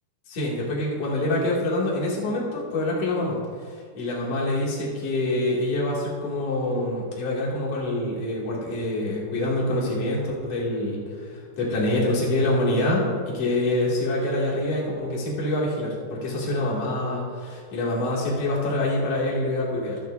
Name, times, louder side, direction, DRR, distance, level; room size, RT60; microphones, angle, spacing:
voice 1, 0.3-3.4 3.6-20.0, left 1 dB, 40° left, -5 dB, 2.8 m, -26 dB
24.5 x 8.2 x 2.7 m, 2.1 s
omnidirectional pair, 5.5 m